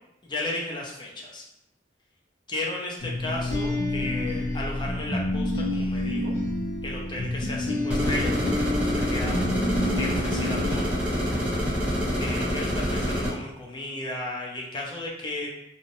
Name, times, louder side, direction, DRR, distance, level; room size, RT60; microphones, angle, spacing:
voice 1, 0.2-1.4 2.5-6.3 6.8-9.7 9.9-11.0 12.2-15.5, left 2 dB, 25° left, -2 dB, 0.5 m, -34 dB
sound 1, 3.0-11.7, left 1 dB, 75° left, 0.7 m, -29 dB
sound 2, 7.9-13.3, equal, 5° right, 0.8 m, -26 dB
2.8 x 2.0 x 2.6 m, 0.81 s
head